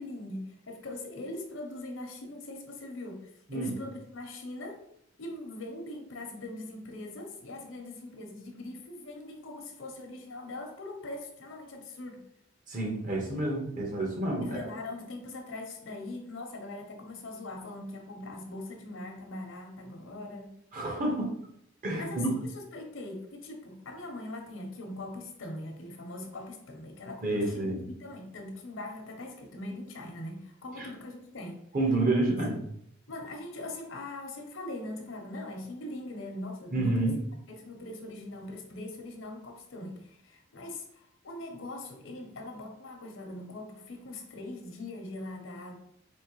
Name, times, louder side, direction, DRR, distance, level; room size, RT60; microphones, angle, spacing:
voice 1, 0.0-4.8 5.2-12.2 14.4-20.5 22.0-31.6 33.1-37.0 37.5-45.8, left 2 dB, 80° left, 4 dB, 0.8 m, -41 dB
voice 2, 12.7-14.6 20.7-21.3 21.8-22.3 27.2-27.9 30.8-30.9 31.7-32.6 36.7-37.1, right 2 dB, 45° right, 0 dB, 1.1 m, -29 dB
4.4 x 3.0 x 3.0 m, 0.71 s
head